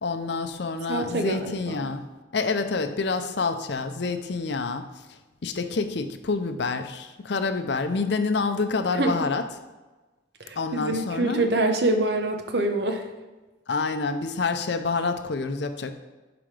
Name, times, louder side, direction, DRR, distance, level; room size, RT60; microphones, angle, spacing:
voice 1, 0.0-9.4 10.6-11.5 13.7-15.9, left 4 dB, 65° left, 8 dB, 0.6 m, -28 dB
voice 2, 0.9-1.9 9.0-9.1 10.5-13.0, right 2 dB, 60° right, 5 dB, 0.9 m, -25 dB
11.5 x 4.9 x 3.3 m, 1.2 s
head